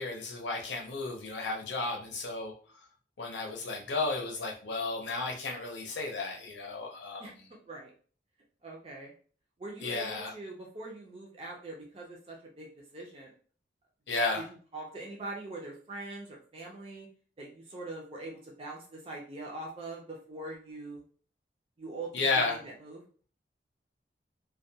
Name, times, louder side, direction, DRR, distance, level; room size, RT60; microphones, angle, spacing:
voice 1, 0.0-2.5 3.2-7.3 9.8-10.3 14.1-14.4 22.1-22.5, left 3 dB, 80° left, 0 dB, 0.6 m, -33 dB
voice 2, 8.6-9.1 9.6-12.7 12.9-13.3 14.7-17.1 17.4-21.0 21.8-23.0, right 2 dB, 30° right, -2 dB, 0.5 m, -43 dB
2.2 x 2.2 x 2.7 m, 0.43 s
head